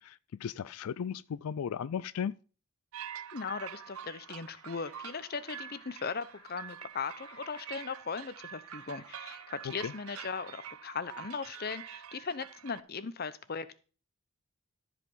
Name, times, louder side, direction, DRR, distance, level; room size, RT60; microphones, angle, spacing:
voice 1, 0.0-2.3 9.8-9.9, left 7 dB, 85° left, 0.4 m, -36 dB
sound 1, 2.9-12.8, right 9 dB, 75° right, 0.5 m, -46 dB
sound 2, 3.1-11.8, left 2 dB, 20° left, 1.9 m, -60 dB
voice 2, 3.3-13.8, left 5 dB, 45° left, 0.7 m, -38 dB
13.5 x 4.9 x 5.4 m
head